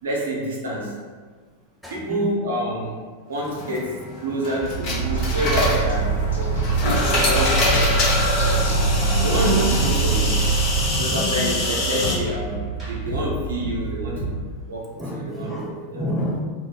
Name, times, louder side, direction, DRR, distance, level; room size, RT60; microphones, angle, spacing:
voice 1, 0.0-1.0 1.9-3.0 3.3-6.7 7.2-8.2 9.2-10.5 11.0-16.1, right 1 dB, 65° right, -4 dB, 0.7 m, -28 dB
voice 2, 1.8-2.3 8.6-9.2 10.8-11.4 15.0-16.4, equal, ahead, -4 dB, 0.4 m, -31 dB
sound 1, 3.4-12.2, left 2 dB, 35° left, 0.7 m, -25 dB
sound 2, 4.6-14.4, right 2 dB, 20° right, 0.9 m, -30 dB
sound 3, 5.0-10.9, right 4 dB, 70° left, 0.6 m, -23 dB
2.4 x 2.0 x 3.8 m, 1.5 s
figure-of-eight pair, 90°, 0 cm